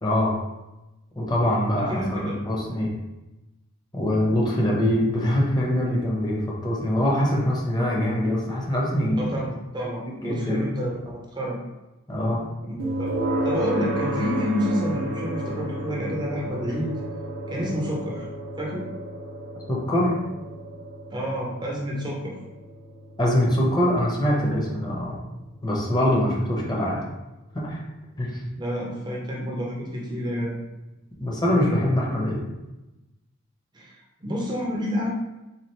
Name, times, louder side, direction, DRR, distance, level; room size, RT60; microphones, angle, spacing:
voice 1, 0.0-0.3 1.1-2.9 3.9-9.2 10.1-10.7 12.1-12.4 19.7-20.2 23.2-25.2 25.6-27.0 27.5-27.8 28.2-28.4 31.2-32.4, left 1 dB, 20° left, -4 dB, 0.8 m, -23 dB
voice 2, 1.7-2.4 9.2-11.6 12.6-13.1 13.4-16.9 17.5-18.3 18.6-18.9 21.1-22.3 28.6-30.6 33.7-34.0 34.2-35.1, equal, 20° right, -3 dB, 0.5 m, -29 dB
sound 1, 12.8-27.7, right 1 dB, 75° right, 0.6 m, -33 dB
4.1 x 2.4 x 3.1 m, 1.0 s
head